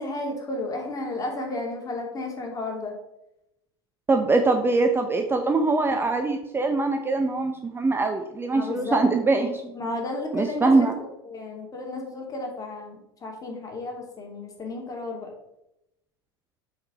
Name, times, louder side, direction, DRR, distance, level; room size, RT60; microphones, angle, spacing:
voice 1, 0.0-2.9 8.5-9.0 9.7-15.3, left 2 dB, 25° left, 1 dB, 2.7 m, -33 dB
voice 2, 4.1-9.7 10.3-10.9, right 3 dB, 15° right, 5 dB, 0.8 m, -23 dB
7.9 x 4.9 x 5.0 m, 0.87 s
hypercardioid pair, 85°, 14 cm